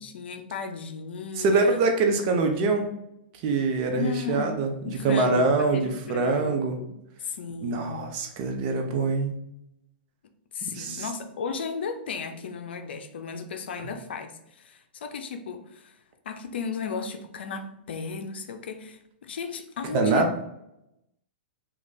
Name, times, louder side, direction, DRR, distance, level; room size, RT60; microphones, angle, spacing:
voice 1, 0.0-1.8 4.0-8.2 10.5-16.0 16.3-20.3, left 5 dB, 75° left, 7 dB, 0.5 m, -35 dB
voice 2, 1.4-2.9 3.4-6.8 7.6-9.3 10.7-11.0 19.9-20.5, right 3 dB, 45° right, 4 dB, 0.8 m, -24 dB
3.2 x 2.4 x 3.9 m, 0.84 s
hypercardioid pair, 125°, 6 cm